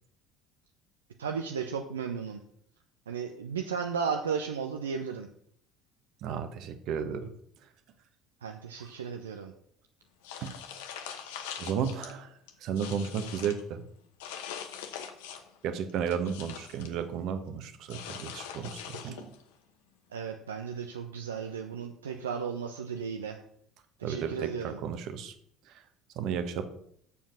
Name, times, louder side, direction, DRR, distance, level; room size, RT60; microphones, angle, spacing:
voice 1, 1.2-2.4 3.1-5.3 8.4-9.5 20.1-23.4 24.0-24.8, right 6 dB, 75° right, 4 dB, 0.6 m, -34 dB
voice 2, 6.2-7.2 10.4-10.6 11.6-12.3 12.6-13.8 15.6-19.3 24.0-25.3 25.7-25.8 26.2-26.6, right 7 dB, 55° right, 9 dB, 1.1 m, -33 dB
sound 1, 10.2-12.1 12.5-13.6 14.2-15.6 15.9-16.9 17.9-19.4, left 8 dB, 65° left, 1.0 m, -42 dB
7.2 x 7.0 x 6.0 m, 0.67 s
figure-of-eight pair, 60°, 0 cm